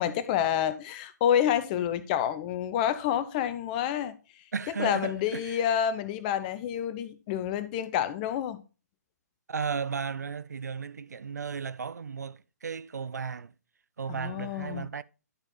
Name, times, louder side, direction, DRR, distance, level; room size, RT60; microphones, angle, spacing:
voice 1, 0.0-4.2 4.8-8.6 14.1-14.9, left 9 dB, 30° left, 0.6 m, -28 dB
voice 2, 4.5-5.6 9.5-13.5 14.0-15.0, right 6 dB, 70° right, 0.4 m, -35 dB
11.5 x 4.4 x 4.2 m
figure-of-eight pair, 130°, 9 cm